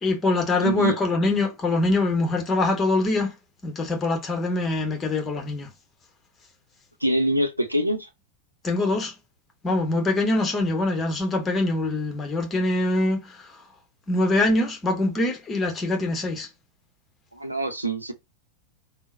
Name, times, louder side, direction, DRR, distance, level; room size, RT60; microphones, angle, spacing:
voice 1, 0.0-3.3 3.6-5.7 8.6-9.1 9.6-13.6 14.1-16.5, left 2 dB, 20° left, 0.9 m, -24 dB
voice 2, 0.6-0.9 7.0-8.1 17.3-18.1, right 1 dB, 85° right, 0.5 m, -24 dB
3.7 x 2.0 x 2.5 m
figure-of-eight pair, 90°, 0 cm